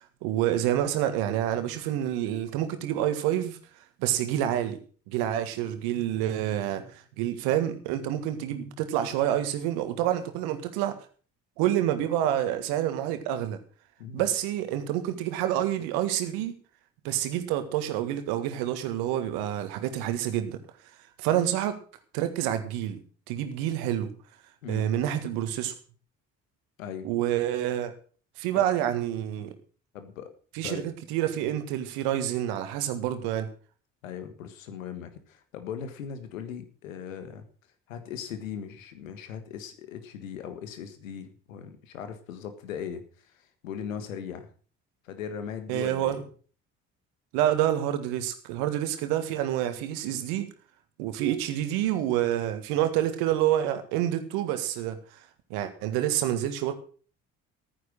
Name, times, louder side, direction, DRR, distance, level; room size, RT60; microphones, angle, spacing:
voice 1, 0.2-3.6 4.0-4.8 5.1-10.9 11.6-13.6 14.1-16.5 17.0-20.6 21.2-21.8 22.1-23.0 23.3-24.1 24.7-25.7 27.0-27.9 28.4-29.6 30.6-33.5 45.7-46.2 47.3-50.5 51.0-55.2 55.5-56.7, right 12 dB, 70° right, 9 dB, 1.8 m, -28 dB
voice 2, 26.8-27.1 28.5-28.6 29.9-30.3 30.6-30.9 34.0-37.4 37.9-43.3 43.6-44.5 45.0-46.2, left 8 dB, 85° left, 9 dB, 1.7 m, -39 dB
14.0 x 9.7 x 6.2 m, 0.42 s
hypercardioid pair, 50°, 39 cm